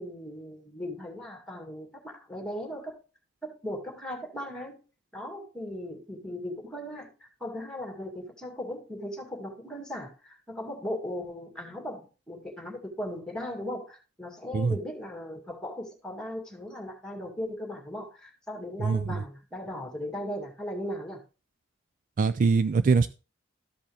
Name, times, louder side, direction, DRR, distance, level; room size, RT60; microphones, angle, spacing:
voice 1, 0.0-3.0 3.4-4.8 5.1-21.2, left 1 dB, 5° left, 1 dB, 2.2 m, -38 dB
voice 2, 18.8-19.2 22.2-23.1, right 4 dB, 45° right, 13 dB, 0.3 m, -23 dB
13.0 x 5.3 x 3.4 m, 0.32 s
head